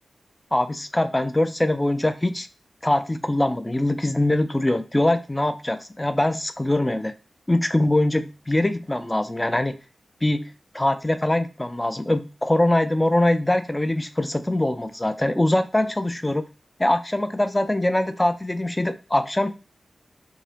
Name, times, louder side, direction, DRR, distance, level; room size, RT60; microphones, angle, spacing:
voice 1, 0.5-2.5 2.8-7.1 7.5-9.8 10.2-10.5 10.7-16.5 16.8-19.5, left 1 dB, 20° left, 10 dB, 0.4 m, -23 dB
3.6 x 2.7 x 3.3 m, 0.33 s
cardioid pair, 45°, 0 cm